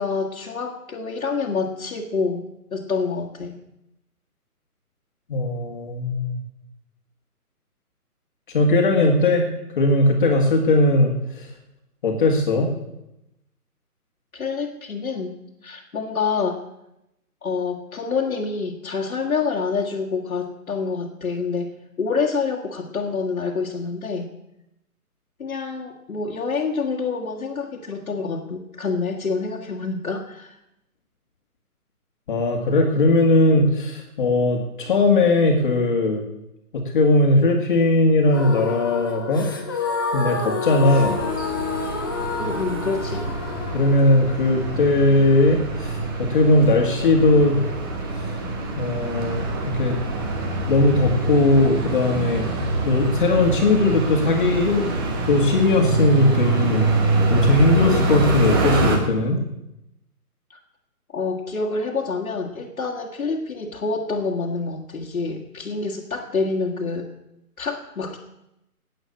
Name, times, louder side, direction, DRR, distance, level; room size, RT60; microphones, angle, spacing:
voice 1, 0.0-2.4 2.7-3.6 14.3-15.3 15.6-16.6 17.4-21.7 22.0-24.3 25.4-30.6 42.4-43.3 60.5-60.6 61.1-67.1 67.6-68.2, left 4 dB, 65° left, -1 dB, 2.0 m, -27 dB
voice 2, 5.3-6.4 8.5-9.5 9.8-11.5 12.0-12.7 32.3-36.2 36.7-39.8 40.1-41.2 43.7-47.6 48.8-50.0 50.7-52.5 52.9-54.8 55.3-56.9 57.3-59.4, left 2 dB, 35° left, 2 dB, 2.0 m, -19 dB
sound 1, 38.3-46.3, left 4 dB, 15° left, 0.8 m, -29 dB
sound 2, 40.8-59.0, right 2 dB, 15° right, 1.2 m, -25 dB
12.5 x 8.9 x 8.5 m, 0.87 s
hypercardioid pair, 160°, 46 cm